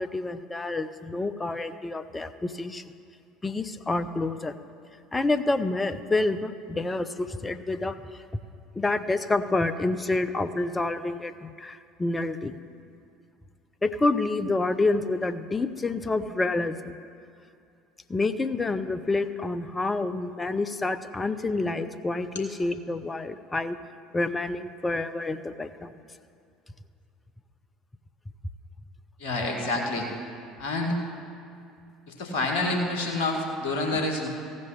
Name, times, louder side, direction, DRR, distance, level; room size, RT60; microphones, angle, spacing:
voice 1, 0.0-2.8 3.4-4.5 5.1-8.2 8.7-12.6 13.8-17.0 18.1-23.8 24.1-25.9 33.9-34.0, left 2 dB, 15° left, 10 dB, 0.7 m, -28 dB
voice 2, 29.2-30.1 30.6-31.0 32.2-34.3, left 2 dB, 60° left, 2 dB, 2.0 m, -28 dB
15.0 x 5.4 x 9.8 m, 2.5 s
figure-of-eight pair, 65°, 0 cm